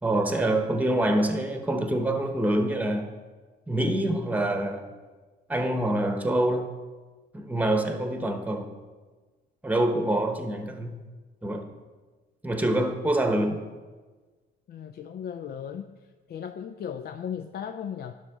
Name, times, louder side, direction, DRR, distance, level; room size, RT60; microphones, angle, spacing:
voice 1, 0.0-3.1 3.7-4.9 5.5-6.7 7.3-8.7 9.6-10.9 11.4-11.7 12.4-13.6, right 1 dB, 10° right, 5 dB, 1.0 m, -26 dB
voice 2, 14.7-16.0 16.3-18.1, left 8 dB, 55° left, 8 dB, 0.4 m, -36 dB
11.0 x 6.1 x 3.6 m, 1.3 s
cardioid pair, 90°, 20 cm